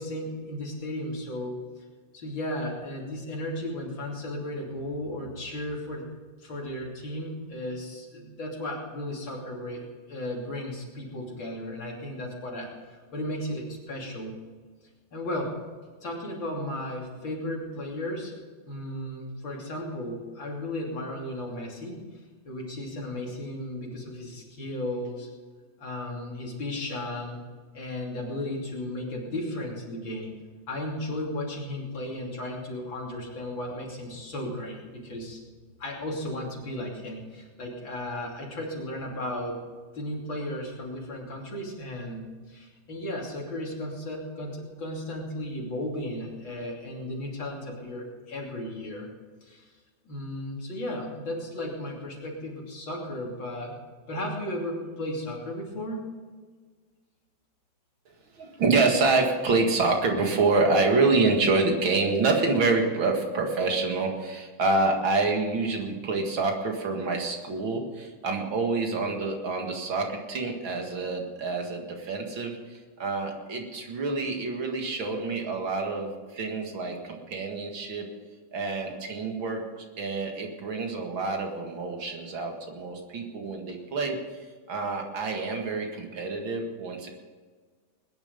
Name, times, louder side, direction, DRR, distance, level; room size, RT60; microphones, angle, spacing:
voice 1, 0.0-1.8 2.1-6.1 6.4-14.3 15.1-15.6 16.0-18.3 18.7-22.0 22.5-25.3 25.8-27.4 27.7-30.3 30.7-35.4 35.8-39.6 39.9-49.1 49.4-49.7 50.1-53.8 54.1-56.1, left 1 dB, 75° left, -2 dB, 3.7 m, -35 dB
voice 2, 58.4-78.1 78.5-84.2 84.7-87.1, right 3 dB, 80° right, 2 dB, 2.8 m, -27 dB
20.5 x 10.5 x 5.3 m, 1.5 s
omnidirectional pair, 2.1 m